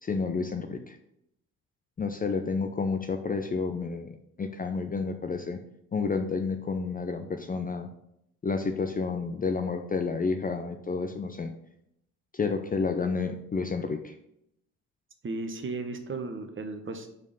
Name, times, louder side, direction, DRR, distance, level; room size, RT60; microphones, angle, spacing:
voice 1, 0.0-1.0 2.0-5.6 5.9-7.9 8.4-11.5 12.3-14.1, left 4 dB, 20° left, 6 dB, 0.6 m, -30 dB
voice 2, 15.2-17.1, right 3 dB, 30° right, 6 dB, 1.1 m, -35 dB
5.3 x 5.2 x 5.4 m, 0.78 s
figure-of-eight pair, 45°, 40 cm